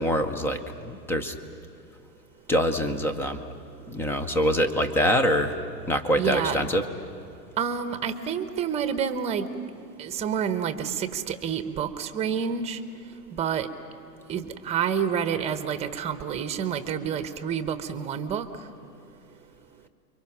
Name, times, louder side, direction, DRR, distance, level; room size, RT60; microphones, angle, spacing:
voice 1, 0.0-1.3 2.5-3.4 3.9-5.6 5.9-6.8, equal, 5° left, 9 dB, 0.5 m, -24 dB
voice 2, 6.2-6.6 7.6-9.5 10.0-12.8 13.3-13.7 14.3-18.5, right 7 dB, 15° right, 10 dB, 1.0 m, -28 dB
29.5 x 24.0 x 6.0 m, 2.5 s
hypercardioid pair, 130°, 49 cm